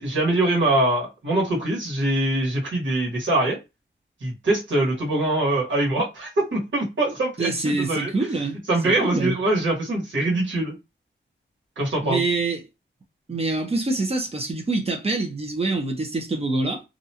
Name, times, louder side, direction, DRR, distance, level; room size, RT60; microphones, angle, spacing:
voice 1, 0.0-3.6 4.2-8.1 8.7-10.7 11.8-12.2, right 2 dB, 70° right, 1.3 m, -23 dB
voice 2, 7.4-8.6 9.0-9.3 12.0-12.6 13.3-16.8, right 3 dB, 30° right, 0.6 m, -25 dB
2.5 x 2.2 x 2.8 m
wide cardioid pair, 120°, 20 cm